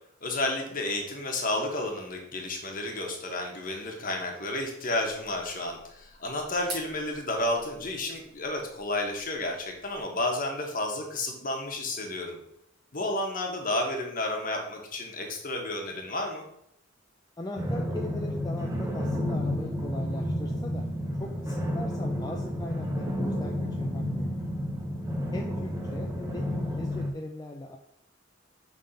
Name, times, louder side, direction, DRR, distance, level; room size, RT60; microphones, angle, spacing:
voice 1, 0.2-12.4 12.9-16.4, left 1 dB, 45° left, 2 dB, 1.2 m, -31 dB
sound 1, 5.0-10.0, right 3 dB, 50° right, 2.6 m, -48 dB
voice 2, 17.4-20.9 21.2-24.5 25.3-27.8, left 1 dB, 20° left, 1 dB, 0.4 m, -39 dB
sound 2, 17.5-27.1, equal, 15° right, 0.7 m, -31 dB
5.7 x 3.6 x 5.1 m, 0.75 s
head